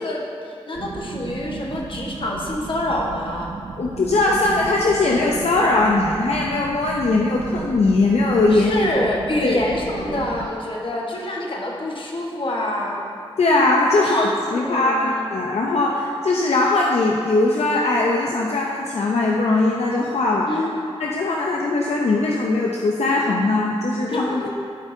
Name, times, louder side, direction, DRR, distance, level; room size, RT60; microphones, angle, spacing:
voice 1, 0.0-3.5 8.5-13.0 14.0-15.2 20.5-20.8 24.1-24.5, left 1 dB, 50° left, -2 dB, 1.3 m, -27 dB
sound 1, 0.7-10.5, right 4 dB, 65° right, 0.4 m, -34 dB
voice 2, 3.8-8.7 9.4-9.6 13.4-20.5 21.0-24.5, left 2 dB, 75° left, -2 dB, 0.6 m, -20 dB
12.0 x 5.4 x 2.7 m, 2.3 s
cardioid pair, 55°, 11 cm